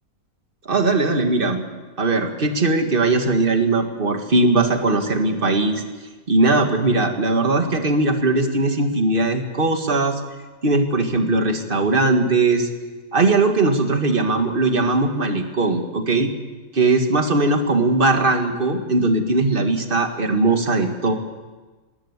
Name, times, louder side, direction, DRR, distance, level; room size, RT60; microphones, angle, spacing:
voice 1, 0.7-1.6 2.0-5.8 6.3-10.2 10.6-12.7 13.1-16.3 16.7-21.1, right 2 dB, 35° right, 5 dB, 2.1 m, -19 dB
19.5 x 19.0 x 8.2 m, 1.3 s
omnidirectional pair, 1.6 m